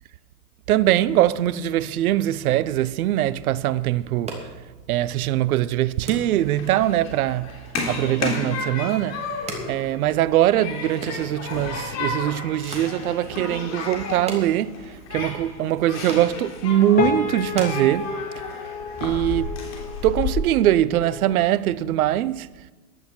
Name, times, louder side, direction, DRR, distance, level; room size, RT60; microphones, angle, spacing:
voice 1, 0.7-4.5 4.9-7.6 7.9-18.1 19.0-19.5 20.0-22.5, right 13 dB, 60° right, 0.8 m, -22 dB
sound 1, 4.0-18.5, right 2 dB, 15° right, 2.7 m, -41 dB
Human group actions, 6.0-20.3, left 4 dB, 35° left, 3.5 m, -33 dB
sound 2, 16.9-21.4, left 6 dB, 15° left, 1.1 m, -31 dB
15.0 x 11.0 x 6.1 m
hypercardioid pair, 125°, 48 cm